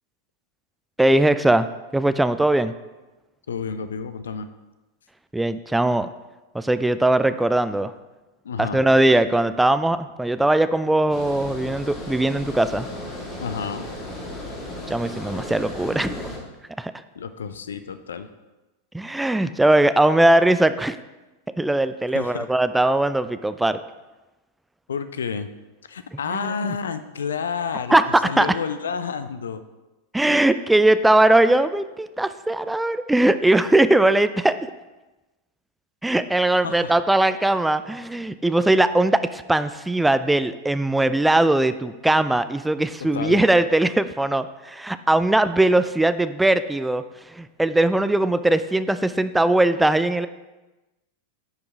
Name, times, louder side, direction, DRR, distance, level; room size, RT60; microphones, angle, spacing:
voice 1, 1.0-1.7 1.9-2.7 5.3-6.1 6.5-7.9 8.6-12.9 14.9-16.3 16.8-16.9 18.9-21.0 21.6-23.8 26.3-26.7 27.9-28.5 30.1-34.6 36.0-47.0 47.3-50.3, right 1 dB, 5° right, 12 dB, 0.3 m, -20 dB
voice 2, 3.5-4.5 8.4-8.8 13.4-13.9 17.2-18.3 22.1-22.5 24.9-25.5 25.9-29.6 36.6-36.9 43.0-43.4, left 6 dB, 65° left, 11 dB, 0.4 m, -30 dB
Water, 11.1-16.4, left 1 dB, 25° left, 1.8 m, -35 dB
10.5 x 4.8 x 3.4 m, 1.1 s
figure-of-eight pair, 90°, 0 cm